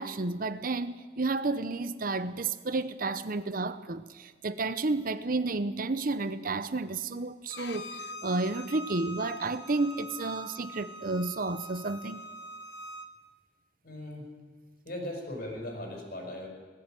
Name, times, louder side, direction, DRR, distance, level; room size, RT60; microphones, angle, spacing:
voice 1, 0.0-12.2, right 3 dB, 55° right, 0.8 m, -31 dB
Bowed string instrument, 7.5-13.1, equal, 80° left, 1.3 m, -43 dB
voice 2, 13.8-14.3 14.8-16.5, left 1 dB, 60° left, 5.7 m, -38 dB
19.0 x 15.0 x 9.1 m
head